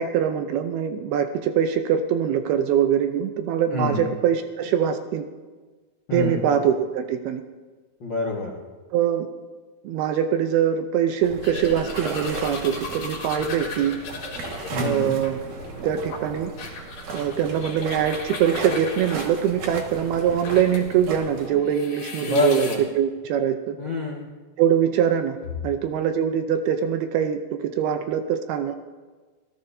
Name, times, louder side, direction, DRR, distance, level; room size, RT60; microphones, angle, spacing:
voice 1, 0.0-5.2 6.1-7.4 8.9-9.3 9.8-14.0 14.8-15.4 15.8-16.5 17.1-23.8 24.6-25.4 25.6-28.8, right 9 dB, 75° right, 7 dB, 2.5 m, -23 dB
voice 2, 3.7-4.1 6.1-6.4 8.0-8.5 14.7-15.1 22.2-22.8 23.8-24.3, left 3 dB, 75° left, -3 dB, 1.0 m, -26 dB
sound 1, 11.2-21.5, right 3 dB, 55° right, 2.9 m, -36 dB
sound 2, 11.4-20.9 21.4-22.8, left 3 dB, 55° left, 4.2 m, -37 dB
27.0 x 17.5 x 2.7 m, 1.4 s
omnidirectional pair, 4.9 m